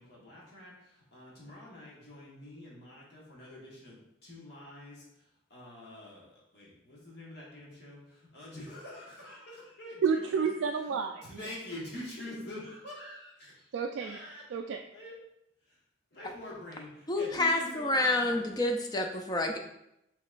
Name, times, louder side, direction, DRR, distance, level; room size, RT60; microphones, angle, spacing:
voice 1, 0.0-10.5 11.2-13.7 14.0-14.4 14.9-15.1 15.6-15.8 16.1-18.5, left 1 dB, 60° left, -5 dB, 1.5 m, -46 dB
voice 2, 10.0-11.5 13.7-14.2 14.5-14.8, right 6 dB, 90° right, 3 dB, 0.3 m, -30 dB
voice 3, 17.1-19.6, left 2 dB, 20° left, 4 dB, 0.4 m, -28 dB
6.1 x 3.0 x 2.4 m, 0.81 s
head